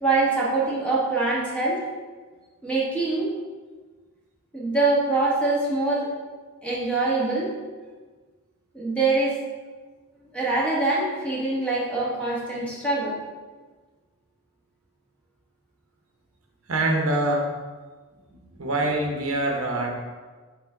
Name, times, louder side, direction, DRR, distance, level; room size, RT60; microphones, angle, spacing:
voice 1, 0.0-1.8 2.6-3.3 4.5-6.1 6.6-7.5 8.7-9.4 10.3-13.2, right 3 dB, 5° left, -6 dB, 1.5 m, -24 dB
voice 2, 16.7-17.5 18.3-20.0, right 2 dB, 70° right, 1 dB, 1.0 m, -25 dB
8.3 x 3.7 x 3.6 m, 1.4 s
head